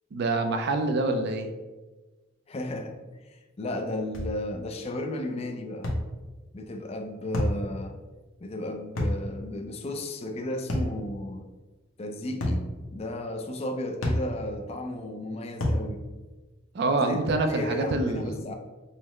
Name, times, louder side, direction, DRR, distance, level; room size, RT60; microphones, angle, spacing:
voice 1, 0.1-1.5 16.7-18.5, right 2 dB, 55° right, 5 dB, 0.4 m, -26 dB
voice 2, 2.5-3.0 3.3-5.9 6.5-8.0 8.4-11.5 12.0-16.1 17.0-18.5, left 1 dB, 30° left, 4 dB, 0.4 m, -34 dB
sound 1, 4.1-4.4 5.8-6.1 7.3-7.6 9.0-9.2 10.7-11.0 12.4-12.7 14.0-14.3 15.6-15.9, left 1 dB, 80° left, 0.9 m, -26 dB
5.6 x 2.1 x 3.0 m, 1.2 s
head